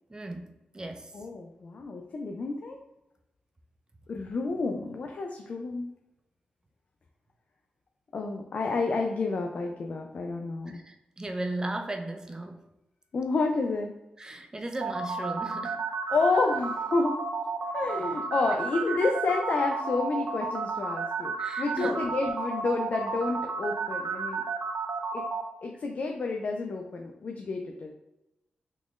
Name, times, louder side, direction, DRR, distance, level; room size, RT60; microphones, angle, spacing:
voice 1, 0.1-0.5 0.7-1.1 10.7-12.6 14.2-15.8 21.4-22.1, right 1 dB, 25° right, 4 dB, 0.5 m, -36 dB
voice 2, 1.1-2.8 4.1-5.9 8.1-10.8 13.1-13.9 16.1-17.2 17.7-24.4 25.1-25.2 25.6-27.9, left 3 dB, 55° left, 2 dB, 0.4 m, -30 dB
sound 1, 14.8-25.4, right 5 dB, 80° right, 0.5 m, -32 dB
3.7 x 3.0 x 2.5 m, 0.93 s
cardioid pair, 75°, 3 cm